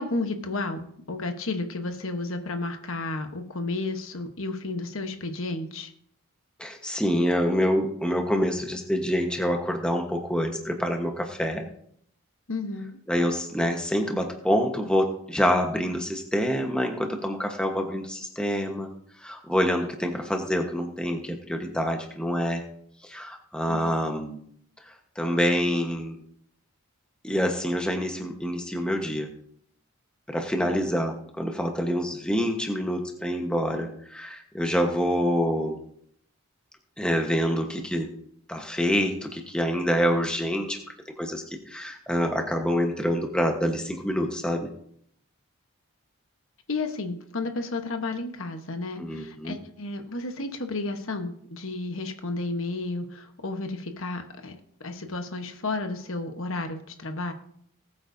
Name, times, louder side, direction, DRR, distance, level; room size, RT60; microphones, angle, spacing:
voice 1, 0.0-5.9 12.5-13.0 23.7-23.9 46.7-54.6 54.8-57.3, left 2 dB, 65° left, 6 dB, 1.1 m, -32 dB
voice 2, 6.6-11.6 13.1-18.9 19.2-22.6 23.0-24.4 24.9-26.2 27.2-29.3 30.3-35.8 37.0-38.1 38.5-40.8 41.2-44.7 49.0-49.6, equal, 5° left, 3 dB, 1.1 m, -26 dB
20.0 x 8.6 x 2.7 m, 0.66 s
head